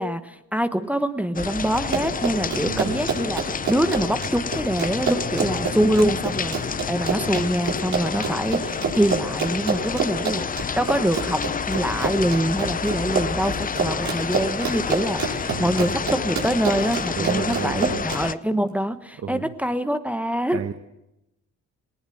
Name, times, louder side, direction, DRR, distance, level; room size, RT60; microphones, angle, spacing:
voice 1, 0.0-6.6 6.9-11.4 11.7-20.6, right 1 dB, 5° right, 9 dB, 1.1 m, -25 dB
sound 1, 1.4-18.4, left 6 dB, 30° left, 0.6 m, -29 dB
Run, 1.7-18.2, right 5 dB, 70° right, 5.7 m, -27 dB
voice 2, 2.6-3.0 15.5-16.0 17.1-18.0 19.2-19.5 20.5-20.7, right 7 dB, 50° right, 8 dB, 1.2 m, -31 dB
18.5 x 18.5 x 7.7 m, 0.89 s
cardioid pair, 90°, 30 cm